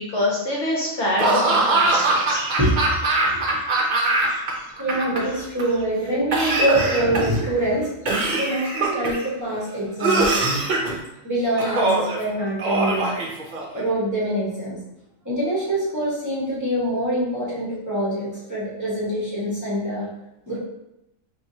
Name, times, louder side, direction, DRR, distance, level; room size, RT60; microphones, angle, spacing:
voice 1, 0.0-2.4, left 1 dB, 60° left, -3 dB, 1.0 m, -25 dB
Laughter / Cough, 1.2-4.5 4.8-5.6 6.3-7.4 8.1-9.3 10.0-10.9 11.6-12.2 12.6-13.8, right 2 dB, 45° right, 0.6 m, -22 dB
voice 2, 3.3-3.9 4.8-7.9 8.4-10.3 11.2-13.1 13.7-14.8 15.2-20.1 20.5-20.6, right 1 dB, 15° right, -9 dB, 1.1 m, -24 dB
4.5 x 2.6 x 2.7 m, 0.86 s
omnidirectional pair, 1.4 m